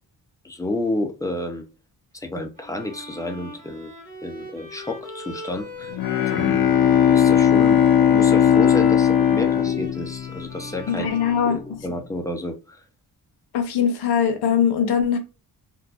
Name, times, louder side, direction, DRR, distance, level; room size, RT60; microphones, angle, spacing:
voice 1, 0.4-1.7 2.1-3.9 4.2-6.0 6.3-6.6 7.1-7.8 8.1-11.1 11.4-12.8, left 1 dB, 10° left, 0.4 m, -30 dB
Bowed string instrument, 2.6-12.3, left 1 dB, 20° right, 1.3 m, -40 dB
Bowed string instrument 2, 5.9-10.8, left 9 dB, 65° left, 0.5 m, -18 dB
voice 2, 10.9-11.6 13.5-15.2, left 7 dB, 85° left, 0.8 m, -21 dB
3.8 x 2.3 x 2.3 m
wide cardioid pair, 140°, 39 cm